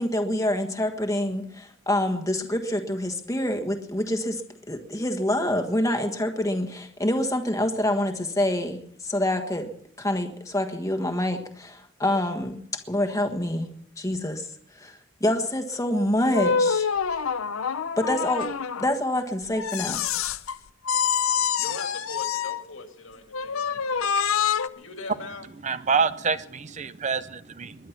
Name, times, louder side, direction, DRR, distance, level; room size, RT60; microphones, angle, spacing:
voice 1, 0.0-4.4 4.7-13.7 14.0-14.5 14.7-16.9 18.0-18.5 18.8-20.1, left 1 dB, 15° left, 6 dB, 1.4 m, -26 dB
sound 1, 16.3-18.9 19.6-20.6 20.8-22.6 23.3-24.7, left 6 dB, 90° left, 0.7 m, -26 dB
voice 2, 21.4-25.9 26.8-27.1, left 3 dB, 70° left, 5 dB, 2.5 m, -42 dB
voice 3, 25.6-27.8, right 5 dB, 35° right, 14 dB, 0.6 m, -26 dB
21.5 x 11.0 x 5.9 m, 0.66 s
head